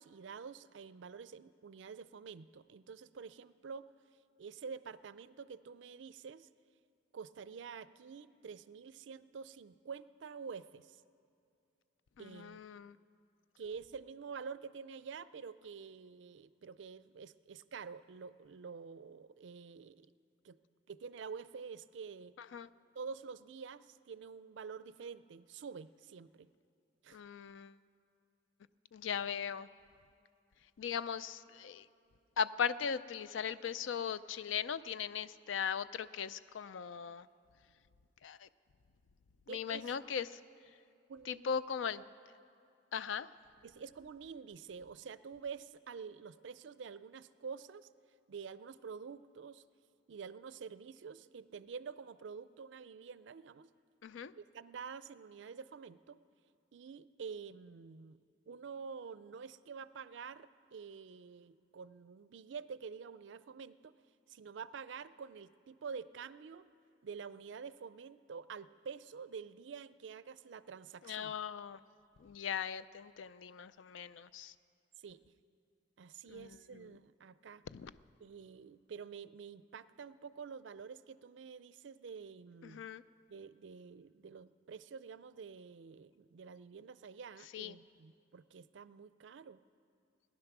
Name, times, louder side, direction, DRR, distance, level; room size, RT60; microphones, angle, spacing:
voice 1, 0.0-3.9 4.4-6.5 7.1-11.0 12.2-12.6 13.6-20.1 20.4-20.6 20.9-22.3 22.9-26.5 27.0-27.2 39.5-39.9 41.1-41.5 43.6-47.9 48.3-49.6 50.1-53.7 54.4-56.2 56.7-58.2 58.5-64.0 64.3-66.7 67.0-71.3 75.0-75.2 76.0-77.6 78.2-82.9 83.3-89.6, right 5 dB, 70° right, 16 dB, 0.4 m, -48 dB
voice 2, 12.2-13.0 22.4-22.7 27.1-27.7 28.9-29.7 30.8-31.9 32.4-37.3 38.2-38.5 39.5-40.4 41.3-42.0 42.9-43.3 54.0-54.3 71.0-71.8 72.2-74.5 76.3-76.8 77.7-77.9 82.6-83.0 87.5-87.8, left 7 dB, 80° left, 16 dB, 0.4 m, -39 dB
18.0 x 10.5 x 6.0 m, 2.5 s
head